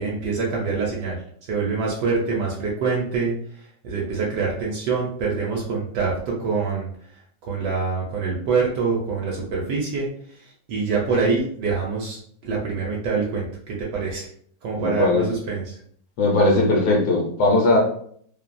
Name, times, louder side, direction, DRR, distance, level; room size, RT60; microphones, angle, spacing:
voice 1, 0.0-6.9 7.4-12.2 12.4-14.3 14.6-15.8, right 4 dB, 75° right, -3 dB, 1.1 m, -25 dB
voice 2, 14.8-15.3 16.2-17.8, left 2 dB, 70° left, -1 dB, 1.1 m, -19 dB
3.0 x 2.2 x 2.4 m, 0.62 s
omnidirectional pair, 2.0 m